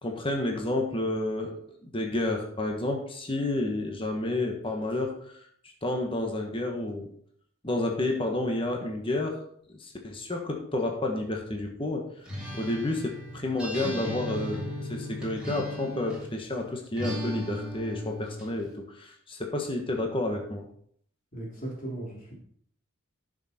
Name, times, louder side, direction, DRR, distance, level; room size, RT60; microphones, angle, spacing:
voice 1, 0.0-1.5 1.8-5.4 5.8-7.1 7.6-9.4 9.7-12.1 12.5-14.6 14.9-20.6, left 2 dB, 25° left, 2 dB, 1.4 m, -30 dB
Acoustic guitar, 12.3-16.4 17.0-18.5, left 1 dB, 5° right, 2.4 m, -36 dB
voice 2, 21.3-22.3, right 1 dB, 40° left, -3 dB, 3.2 m, -37 dB
10.5 x 6.5 x 4.4 m, 0.63 s
head